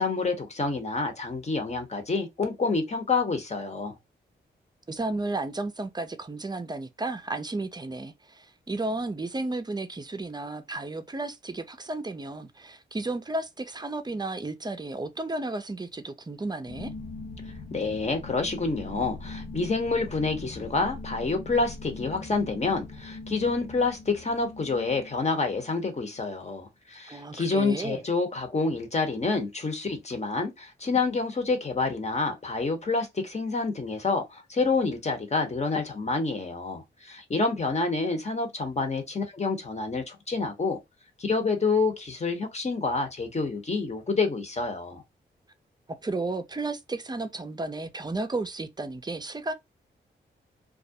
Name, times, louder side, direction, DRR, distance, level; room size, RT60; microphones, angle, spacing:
voice 1, 0.0-3.9 17.7-40.8 41.2-45.0, left 3 dB, 35° left, 0.9 m, -28 dB
voice 2, 4.9-16.9 27.1-28.0 45.9-49.5, right 2 dB, 20° right, 0.5 m, -33 dB
sound 1, 16.6-26.1, left 3 dB, 75° left, 0.7 m, -41 dB
2.3 x 2.0 x 2.6 m
cardioid pair, 50°, 20 cm